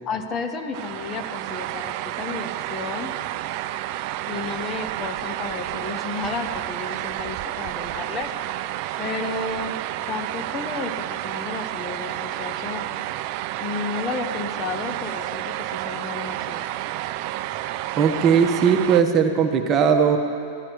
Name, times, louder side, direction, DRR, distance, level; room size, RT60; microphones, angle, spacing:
voice 1, 0.0-3.1 4.3-8.3 9.0-9.8 10.1-12.9 13.6-16.7, left 4 dB, 30° left, 6 dB, 1.0 m, -32 dB
sound 1, 0.7-19.0, right 14 dB, 50° right, 0.4 m, -30 dB
voice 2, 18.0-20.2, right 7 dB, 35° right, 4 dB, 1.1 m, -18 dB
15.5 x 10.5 x 4.6 m, 2.5 s
hypercardioid pair, 105°, 0 cm